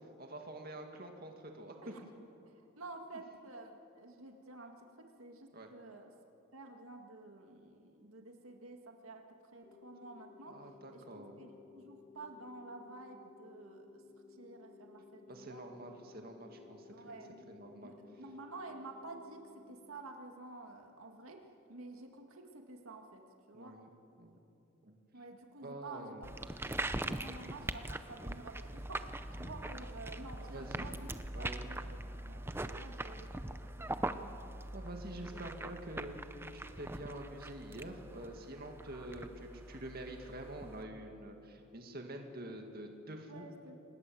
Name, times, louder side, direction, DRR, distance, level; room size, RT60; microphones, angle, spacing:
voice 1, 0.2-1.9 5.5-5.7 10.5-11.4 15.3-17.2 17.5-17.9 23.5-23.9 24.2-24.4 24.8-24.9 25.6-26.3 30.4-30.9 31.3-31.6 34.7-36.2 36.5-43.5, right 1 dB, 45° right, 3 dB, 2.2 m, -47 dB
voice 2, 2.4-6.1 6.5-10.6 10.9-14.0 14.3-15.7 16.9-23.8 25.1-26.3 26.7-31.1 31.4-34.6 43.3-43.8, right 2 dB, 75° right, 3 dB, 1.9 m, -51 dB
sound 1, 9.6-19.6, left 4 dB, 25° left, 3.9 m, -58 dB
sound 2, 26.2-40.8, right 1 dB, 10° right, 0.6 m, -42 dB
26.5 x 19.5 x 7.8 m, 2.7 s
head